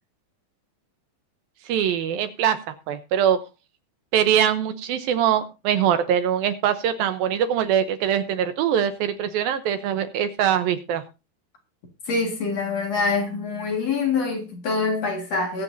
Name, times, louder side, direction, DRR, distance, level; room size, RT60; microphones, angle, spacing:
voice 1, 1.7-2.6 2.9-3.4 4.1-11.0, right 9 dB, 75° right, 2.4 m, -22 dB
voice 2, 12.1-15.6, left 4 dB, 50° left, 2.5 m, -25 dB
21.0 x 8.4 x 2.7 m
omnidirectional pair, 4.6 m